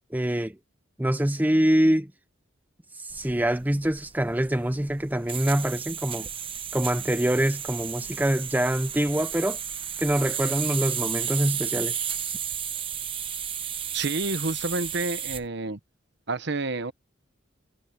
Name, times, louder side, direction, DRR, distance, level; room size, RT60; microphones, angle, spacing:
voice 1, 0.1-0.6 1.0-2.1 2.9-6.3 6.7-9.6 10.0-11.9, right 1 dB, 10° right, 0.6 m, -25 dB
sound 1, 3.1-15.5, right 8 dB, 25° right, 1.0 m, -33 dB
voice 2, 13.9-15.8 16.3-16.9, right 3 dB, 60° right, 1.1 m, -29 dB
head